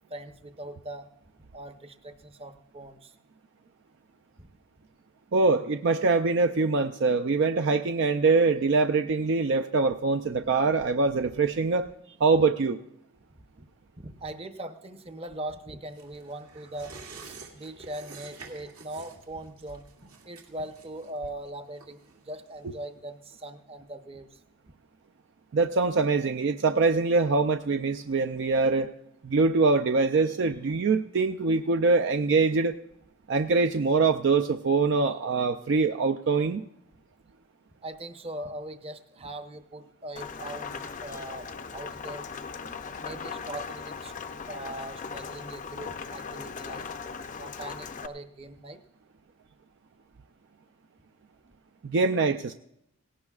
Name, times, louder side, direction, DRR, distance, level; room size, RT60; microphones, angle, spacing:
voice 1, 0.1-1.1 1.5-3.2 4.4-4.5 14.0-16.9 17.2-19.9 20.2-24.4 37.8-42.3 43.0-44.1 44.5-46.9 47.4-48.8, right 1 dB, 25° right, 8 dB, 0.7 m, -40 dB
voice 2, 5.3-11.9 12.2-12.8 25.5-28.9 29.2-32.8 33.3-36.6 51.8-52.5, right 4 dB, 55° right, 7 dB, 0.4 m, -24 dB
sound 1, 15.9-23.0 23.3-23.4, right 4 dB, 80° right, 2.2 m, -49 dB
Rain, 40.2-48.1, left 5 dB, 35° left, 0.5 m, -38 dB
18.0 x 17.0 x 2.4 m, 0.81 s
head